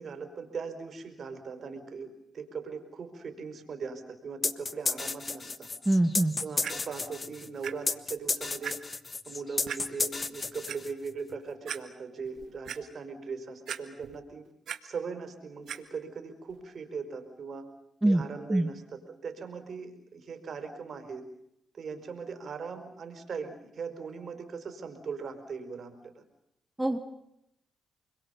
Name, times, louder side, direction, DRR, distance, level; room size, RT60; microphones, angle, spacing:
voice 1, 0.0-5.7 6.4-8.8 9.2-14.5 14.8-17.7 18.0-21.2 21.7-26.2, right 5 dB, 60° right, 7 dB, 4.9 m, -39 dB
sound 1, 4.4-11.1, left 3 dB, 35° left, 1.4 m, -32 dB
voice 2, 5.9-6.3 18.0-18.2 18.5-18.7 26.8-27.0, right 1 dB, 15° right, 6 dB, 1.7 m, -24 dB
Clock, 6.6-6.7 7.6-7.7 8.2-8.3 8.6-8.7 9.7-9.8 10.4-10.8 11.3-11.4 11.7-11.8 12.3-12.8 13.7-14.2 14.5-14.8 15.7-15.8 16.5-16.6, right 9 dB, 75° right, 1.9 m, -37 dB
29.5 x 22.0 x 7.1 m, 0.79 s
cardioid pair, 65°, 0 cm